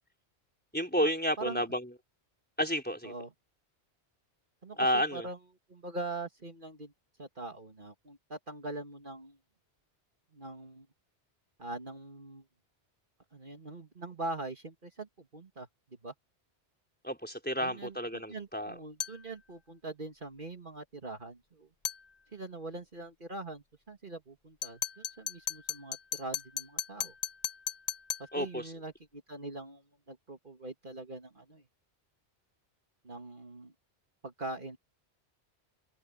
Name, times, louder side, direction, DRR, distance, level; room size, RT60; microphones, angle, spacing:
voice 1, 0.7-1.9 2.6-3.1 4.8-5.3 17.0-18.8 28.3-28.7, equal, 10° left, 4.1 m, -31 dB
voice 2, 4.6-5.4 5.7-6.9 7.2-9.4 10.3-10.9 11.6-12.4 13.3-15.7 16.0-16.1 17.6-21.7 22.3-27.1 28.2-31.6 33.0-33.7 34.2-34.8, right 2 dB, 45° right, 2.2 m, -43 dB
sound 1, 19.0-19.3 21.8-22.1 24.6-28.3, left 6 dB, 35° left, 1.1 m, -36 dB
omnidirectional pair, 1.2 m